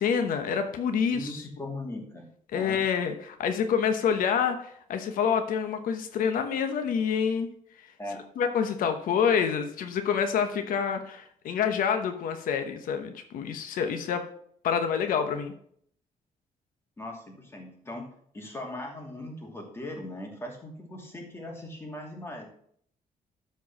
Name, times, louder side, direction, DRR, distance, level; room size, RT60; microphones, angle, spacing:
voice 1, 0.0-1.4 2.5-7.5 8.4-14.2 14.6-15.5, left 7 dB, 90° left, 7 dB, 1.1 m, -27 dB
voice 2, 1.1-2.3 2.5-2.8 8.0-8.2 17.0-18.1 18.3-22.5, left 1 dB, 15° left, 0 dB, 2.6 m, -39 dB
12.5 x 4.7 x 6.0 m, 0.63 s
cardioid pair, 145°, 14 cm